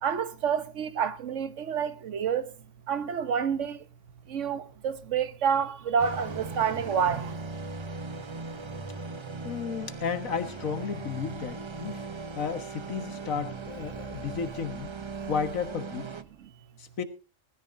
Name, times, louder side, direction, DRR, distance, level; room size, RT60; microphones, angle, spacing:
voice 1, 0.0-2.5 2.9-3.8 4.3-7.4 16.4-16.5, right 7 dB, 65° right, 1.2 m, -28 dB
sound 1, 6.0-16.2, right 4 dB, 30° right, 0.5 m, -39 dB
voice 2, 9.4-12.1 12.4-14.9 15.3-16.1 16.8-17.0, left 6 dB, 90° left, 1.9 m, -33 dB
20.0 x 13.5 x 2.6 m
omnidirectional pair, 1.4 m